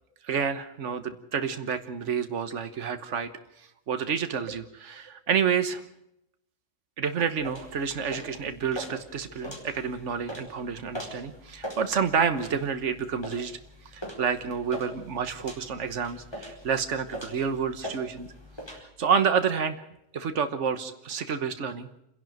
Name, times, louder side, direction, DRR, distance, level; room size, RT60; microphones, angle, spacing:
voice 1, 0.2-3.3 3.6-5.8 7.0-13.6 13.9-18.3 18.7-19.8 20.1-21.9, right 6 dB, 80° right, 9 dB, 1.5 m, -29 dB
sound 1, 7.4-18.8, equal, 20° left, 4.6 m, -42 dB
28.5 x 11.0 x 9.1 m, 0.82 s
omnidirectional pair, 1.2 m